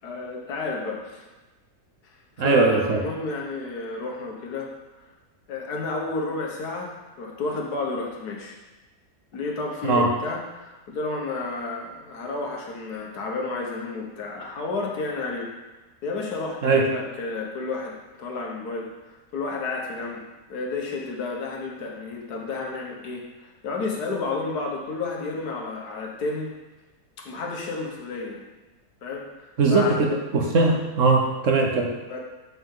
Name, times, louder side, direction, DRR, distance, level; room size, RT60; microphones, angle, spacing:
voice 1, 0.0-1.2 2.4-4.7 5.5-8.6 9.3-15.5 16.0-20.2 20.5-26.5 27.2-28.4 29.0-29.3 29.7-30.0 32.1-32.2, left 3 dB, 85° left, -1 dB, 1.7 m, -31 dB
voice 2, 2.4-3.0 9.8-10.1 16.6-16.8 29.6-31.9, right 3 dB, 60° right, 1 dB, 1.2 m, -20 dB
7.3 x 5.9 x 3.8 m, 1.1 s
omnidirectional pair, 1.6 m